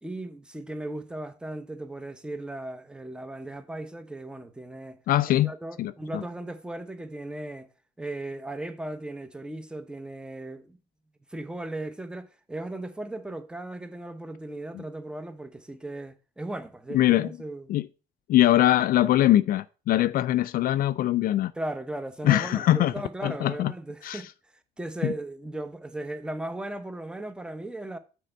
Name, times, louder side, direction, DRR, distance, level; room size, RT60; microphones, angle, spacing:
voice 1, 0.0-5.0 5.3-7.7 8.0-10.8 11.3-17.7 21.5-24.3 24.8-28.0, right 1 dB, 5° right, 0.9 m, -37 dB
voice 2, 5.1-5.5 5.8-6.2 16.9-17.3 17.7-17.9 18.3-21.5 22.2-22.9 23.2-23.7 24.0-24.2 25.0-25.1, left 14 dB, 60° left, 0.4 m, -22 dB
6.6 x 4.4 x 6.4 m
cardioid pair, 110°, 17 cm